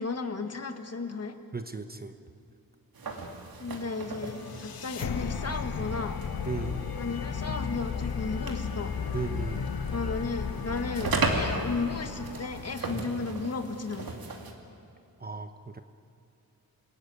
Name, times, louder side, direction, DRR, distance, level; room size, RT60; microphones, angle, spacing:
voice 1, 0.0-1.4 3.6-6.2 7.0-8.9 9.9-14.1, left 4 dB, 45° left, 6 dB, 1.7 m, -34 dB
voice 2, 1.5-2.2 6.5-6.9 9.1-9.7 15.2-15.8, right 4 dB, 25° right, 8 dB, 1.0 m, -35 dB
sound 1, 2.9-14.5, right 3 dB, 70° right, 2.8 m, -37 dB
sound 2, 4.0-13.1, left 6 dB, 75° left, 1.2 m, -34 dB
28.0 x 17.5 x 9.5 m, 2.4 s
wide cardioid pair, 120°, 36 cm